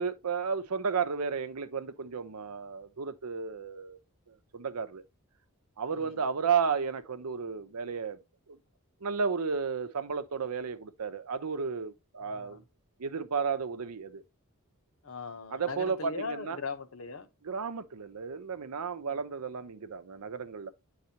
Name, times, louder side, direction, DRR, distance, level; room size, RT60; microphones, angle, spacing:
voice 1, 0.0-4.0 4.3-5.0 5.8-8.2 8.5-8.6 9.0-12.6 13.0-14.2 15.5-16.6 17.4-20.7, right 5 dB, 90° right, 0.7 m, -33 dB
voice 2, 12.2-12.6 15.0-17.3, left 4 dB, 65° left, 0.9 m, -39 dB
9.4 x 4.0 x 2.8 m
head